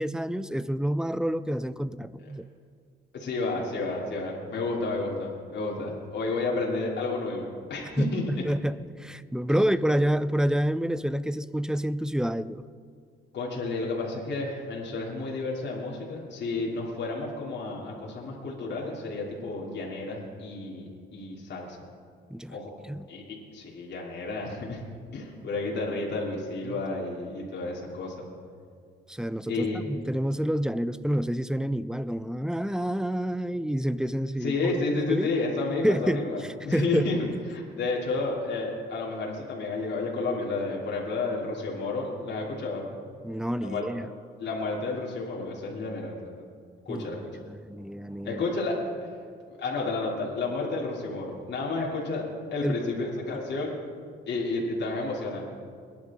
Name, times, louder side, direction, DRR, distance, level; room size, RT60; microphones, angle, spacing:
voice 1, 0.0-2.5 8.0-12.7 22.3-22.6 22.9-23.0 26.7-26.8 29.1-34.7 35.1-35.3 35.8-36.3 36.7-37.1 43.2-44.1 46.9-47.1 47.5-48.4 52.6-52.8, equal, 5° right, 14 dB, 0.5 m, -28 dB
voice 2, 3.1-8.4 9.5-9.7 13.3-21.8 22.5-22.7 23.1-23.2 23.5-24.8 25.1-28.1 29.5-29.8 34.4-42.9 43.6-43.8 44.4-46.4 46.8-47.4 48.2-49.1 49.5-52.2 52.5-53.7 54.3-55.5, left 3 dB, 60° left, -4 dB, 3.0 m, -31 dB
22.5 x 10.5 x 3.7 m, 2.2 s
cardioid pair, 90°, 20 cm